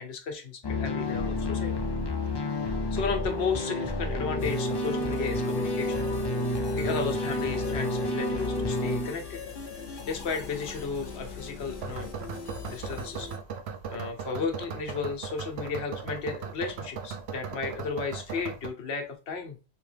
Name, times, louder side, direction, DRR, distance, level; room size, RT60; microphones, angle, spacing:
voice 1, 0.0-1.8 2.6-5.9 6.5-9.4 10.0-12.1 12.6-13.3 13.9-19.6, left 5 dB, 75° left, 3 dB, 1.1 m, -34 dB
sound 1, 0.6-9.1, left 1 dB, 30° left, 0.4 m, -30 dB
sound 2, 1.0-18.7, right 6 dB, 75° right, 0.8 m, -42 dB
sound 3, 4.4-13.4, left 6 dB, 55° left, 0.9 m, -41 dB
3.4 x 3.0 x 3.2 m, 0.31 s
omnidirectional pair, 1.1 m